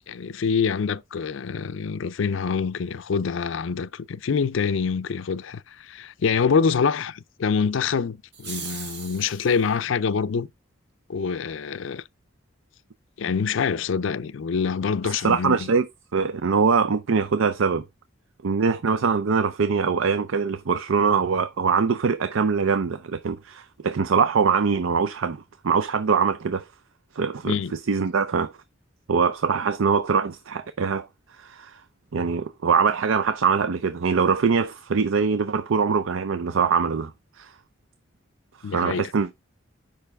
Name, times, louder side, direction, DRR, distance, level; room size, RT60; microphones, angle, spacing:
voice 1, 0.1-10.5 11.1-12.0 13.2-15.7 27.5-27.7 38.6-39.1, left 6 dB, 70° left, 0.4 m, -25 dB
sound 1, 8.3-9.7, right 6 dB, 55° right, 1.7 m, -38 dB
voice 2, 15.1-17.8 18.4-26.7 27.1-27.6 27.9-28.5 29.1-31.1 31.4-31.8 32.1-37.1 37.4-37.5 38.7-39.3, right 5 dB, 80° right, 0.5 m, -23 dB
6.8 x 5.3 x 3.5 m
head